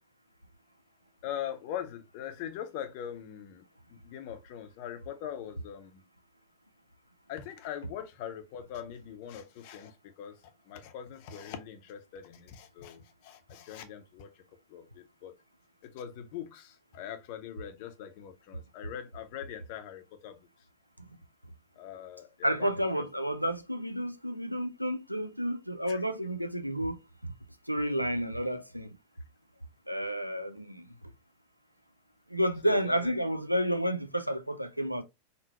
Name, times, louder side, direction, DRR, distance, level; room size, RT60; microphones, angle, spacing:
voice 1, 1.2-6.0 7.3-10.4 10.7-14.3 14.7-15.3 15.8-20.4 21.8-23.0 25.9-26.0 32.6-33.1, left 9 dB, 45° left, 0.6 m, -42 dB
voice 2, 22.4-27.0 27.7-28.9 29.9-30.8 32.3-35.0, equal, 90° right, 0.4 m, -30 dB
3.7 x 2.0 x 2.9 m
figure-of-eight pair, 90°, 0 cm